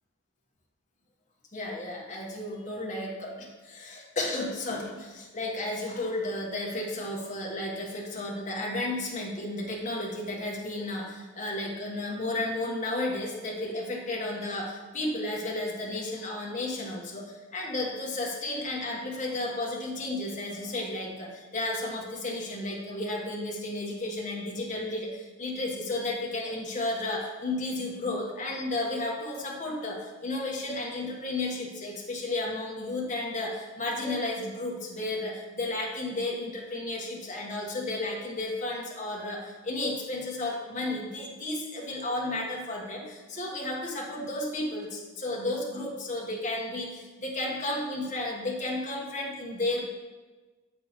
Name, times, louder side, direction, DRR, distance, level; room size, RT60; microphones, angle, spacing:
voice 1, 1.5-49.8, left 2 dB, 35° left, -2 dB, 1.1 m, -33 dB
7.1 x 6.2 x 3.0 m, 1.3 s
head